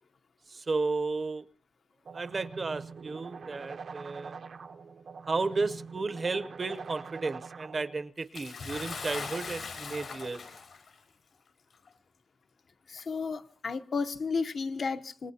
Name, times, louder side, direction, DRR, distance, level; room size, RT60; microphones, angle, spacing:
voice 1, 0.5-1.5 2.1-4.4 5.3-10.4, right 3 dB, 40° right, 0.7 m, -33 dB
sound 1, 2.0-8.0, right 5 dB, 75° right, 0.9 m, -44 dB
Bathtub (filling or washing) / Splash splatter, 8.3-10.9 11.9-12.0 13.0-13.1, left 5 dB, 90° left, 4.8 m, -40 dB
voice 2, 12.9-15.3, left 4 dB, 65° left, 0.8 m, -33 dB
26.5 x 18.5 x 2.8 m
wide cardioid pair, 165°, 0 cm